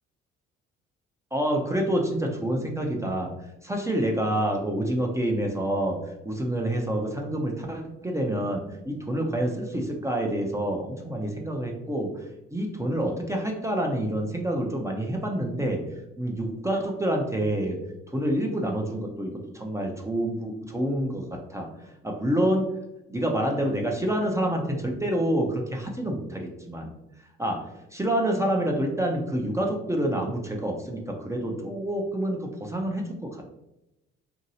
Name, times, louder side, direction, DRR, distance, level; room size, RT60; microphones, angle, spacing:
voice 1, 1.3-3.3 3.6-6.0 6.2-12.2 12.5-15.8 16.2-17.8 18.1-21.7 22.0-22.7 23.1-26.9 27.4-27.7 27.9-33.4, right 1 dB, 10° right, 0 dB, 0.5 m, -27 dB
2.9 x 2.7 x 2.7 m, 0.92 s
hypercardioid pair, 60°, 29 cm